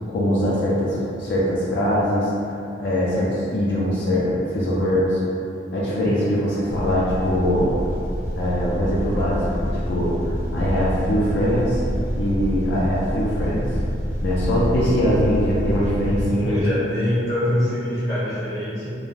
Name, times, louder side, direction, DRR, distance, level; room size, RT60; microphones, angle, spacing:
voice 1, 0.1-2.3 2.8-5.2 5.7-7.8 8.4-11.8 12.2-13.6 14.2-16.6, equal, 70° left, -7 dB, 0.4 m, -22 dB
sound 1, 6.7-16.3, equal, 15° right, 0.4 m, -27 dB
voice 2, 16.4-18.9, left 1 dB, 20° left, -11 dB, 0.7 m, -24 dB
2.3 x 2.2 x 3.1 m, 2.7 s
head